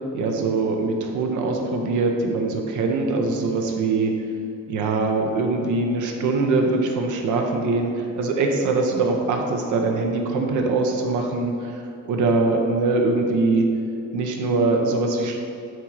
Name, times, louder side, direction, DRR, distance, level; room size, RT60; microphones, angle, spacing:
voice 1, 0.1-4.2 4.7-13.7 14.1-15.4, right 3 dB, 80° right, 3 dB, 0.9 m, -22 dB
7.7 x 3.0 x 4.7 m, 2.6 s
cardioid pair, 90°, 30 cm